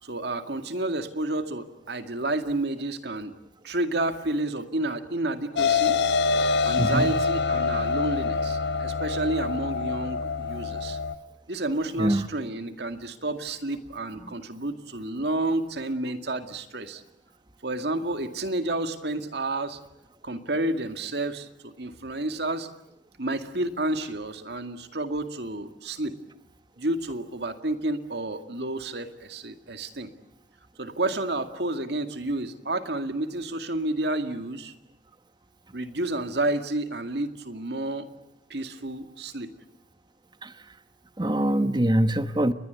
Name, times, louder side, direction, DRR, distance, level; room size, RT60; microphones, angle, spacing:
voice 1, 0.0-3.3 3.6-6.0 6.6-11.0 11.5-17.0 17.6-19.8 20.2-22.7 23.2-26.2 26.8-30.1 30.8-34.7 35.7-38.1 38.5-39.5, right 2 dB, 60° right, 8 dB, 2.2 m, -30 dB
sound 1, 5.6-11.1, left 5 dB, 65° left, 1.2 m, -25 dB
voice 2, 6.8-7.1 12.0-12.3 14.2-14.3 40.4-40.5 41.2-42.5, right 1 dB, 25° right, 12 dB, 1.1 m, -24 dB
29.5 x 21.5 x 8.1 m, 0.81 s
head